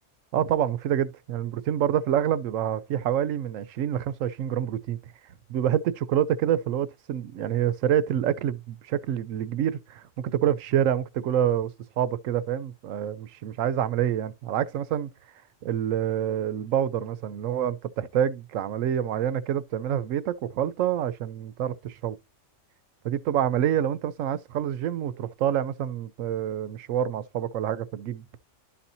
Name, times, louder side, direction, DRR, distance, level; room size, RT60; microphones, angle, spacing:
voice 1, 0.3-5.0 5.5-11.7 12.0-15.1 15.6-22.2 23.0-28.2, right 10 dB, 80° right, 1.0 m, -27 dB
11.5 x 4.3 x 2.7 m
omnidirectional pair, 1.4 m